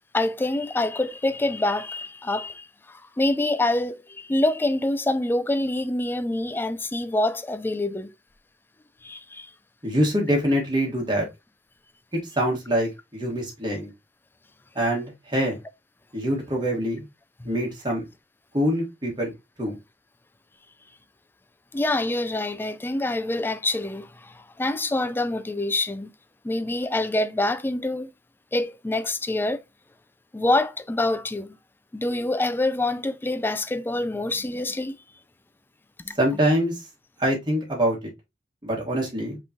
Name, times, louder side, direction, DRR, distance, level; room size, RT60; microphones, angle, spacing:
voice 1, 0.1-8.1 9.0-9.5 17.4-17.5 21.7-26.1 26.4-28.1 28.5-29.6 30.3-31.6 31.9-35.0 36.0-36.1, left 2 dB, 10° left, 0.3 m, -26 dB
voice 2, 9.8-11.3 12.1-13.9 14.7-15.6 16.1-17.0 17.4-18.0 18.5-19.3 19.6-19.7 36.2-36.8 37.2-38.0 38.6-39.4, equal, 25° right, 1.5 m, -24 dB
5.3 x 3.1 x 2.7 m
head